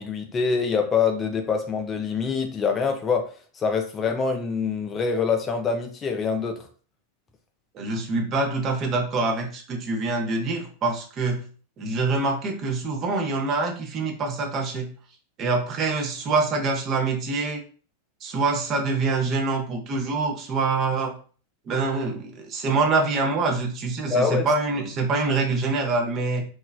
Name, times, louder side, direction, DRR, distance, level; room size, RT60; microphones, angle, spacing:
voice 1, 0.0-3.3 3.6-6.6 24.1-24.4, left 5 dB, 25° left, 5 dB, 0.3 m, -25 dB
voice 2, 7.7-11.4 11.8-14.9 15.4-17.6 18.2-21.1 21.7-26.4, right 3 dB, 30° right, 1 dB, 0.6 m, -25 dB
3.1 x 2.2 x 2.3 m, 0.41 s
figure-of-eight pair, 90°, 0 cm